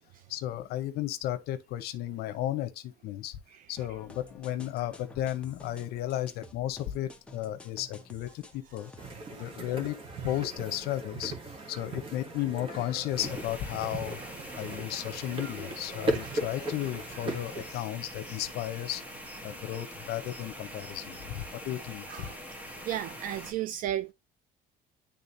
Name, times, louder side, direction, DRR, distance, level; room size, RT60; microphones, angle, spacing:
voice 1, 0.3-3.4 3.7-8.9 9.3-10.0 10.2-11.3 11.7-14.2 14.5-19.0 19.4-22.3, left 13 dB, 70° left, 0.8 m, -34 dB
sound 1, 3.8-9.1, left 2 dB, 5° left, 0.8 m, -51 dB
sound 2, 9.0-17.7, right 1 dB, 30° right, 1.7 m, -37 dB
sound 3, 13.2-23.5, equal, 10° right, 1.3 m, -44 dB
voice 2, 22.1-22.4 22.9-24.1, right 12 dB, 55° right, 0.4 m, -34 dB
10.5 x 3.6 x 2.6 m
cardioid pair, 175°, 17 cm